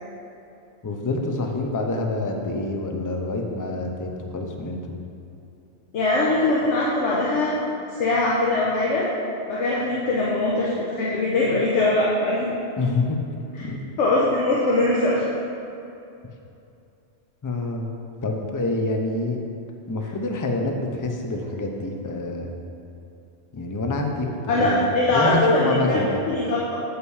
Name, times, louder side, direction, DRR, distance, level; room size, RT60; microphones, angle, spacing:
voice 1, 0.8-4.8 12.8-13.2 13.6-13.8 17.4-17.9 18.2-19.4 19.9-22.5 23.5-24.9 25.1-26.2, left 2 dB, 25° left, 2 dB, 0.5 m, -27 dB
voice 2, 5.9-7.6 7.9-9.1 9.5-12.5 13.6-13.7 14.0-15.3 24.5-26.0 26.3-26.8, left 2 dB, 75° left, -5 dB, 1.2 m, -21 dB
8.1 x 5.5 x 4.8 m, 2.7 s
omnidirectional pair, 1.2 m